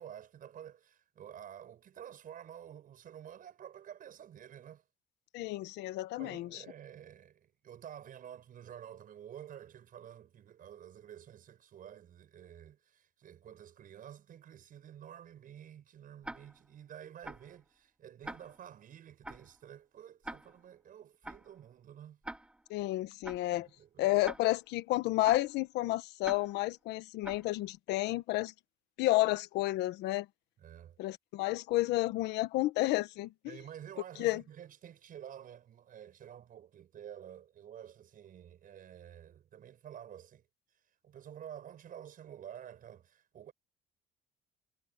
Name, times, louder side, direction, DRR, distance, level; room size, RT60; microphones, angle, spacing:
voice 1, 0.0-4.8 6.2-22.2 23.5-24.2 30.6-31.0 33.4-40.4 41.0-43.5, right 10 dB, 55° right, 6.6 m, -50 dB
voice 2, 5.3-6.6 22.7-23.7 24.0-28.5 29.0-30.3 31.0-33.6 34.2-34.4, left 17 dB, 85° left, 1.3 m, -31 dB
Tick-tock, 16.2-16.7 17.2-17.6 18.2-18.7 19.2-19.6 20.2-20.7 21.2-21.6 22.2-22.7 23.2-23.6 24.2-24.7 25.2-25.6 26.2-26.7 27.2-27.6, right 1 dB, 5° right, 1.2 m, -46 dB
cardioid pair, 110°, 17 cm